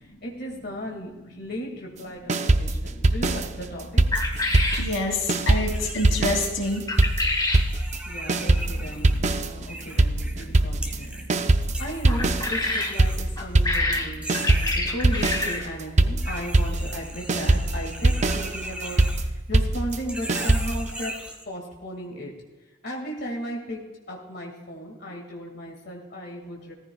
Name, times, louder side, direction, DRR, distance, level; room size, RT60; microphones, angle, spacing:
voice 1, 0.0-4.1 8.1-11.2 11.8-21.2 21.5-22.4 22.8-26.7, equal, 55° left, -1 dB, 2.1 m, -36 dB
sound 1, 2.3-5.0 5.3-20.9, right 2 dB, 35° right, 0.5 m, -23 dB
voice 2, 2.7-3.0 4.4-6.9 8.8-8.9 9.3-9.8 10.4-11.7, left 2 dB, 90° left, 1 dB, 2.8 m, -30 dB
sound 2, 4.1-4.9 6.9-7.7 12.1-13.0 13.4-15.7, left 2 dB, 20° left, 1.6 m, -27 dB
sound 3, 4.1-4.9 5.2-10.5 10.8-11.3 11.6-13.8 14.1-15.6 16.2-19.6 19.9-21.4, right 1 dB, 5° right, 1.4 m, -39 dB
17.5 x 14.5 x 2.3 m, 1.2 s
head